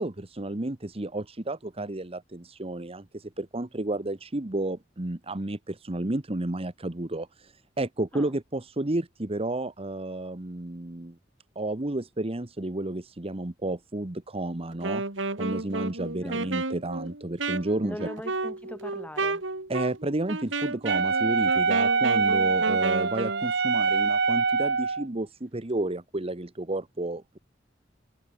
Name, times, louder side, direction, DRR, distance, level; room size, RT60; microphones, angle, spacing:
voice 1, 0.0-11.2 11.5-15.0 15.4-18.0 19.7-27.4, right 2 dB, 30° right, 1.2 m, -32 dB
Wind instrument woodwind instrument, 14.7-23.5, right 3 dB, 85° right, 2.6 m, -32 dB
voice 2, 16.2-16.6 17.8-19.5, equal, 10° left, 7.8 m, -40 dB
Wind instrument woodwind instrument 2, 20.9-25.0, right 4 dB, 65° right, 2.2 m, -24 dB
head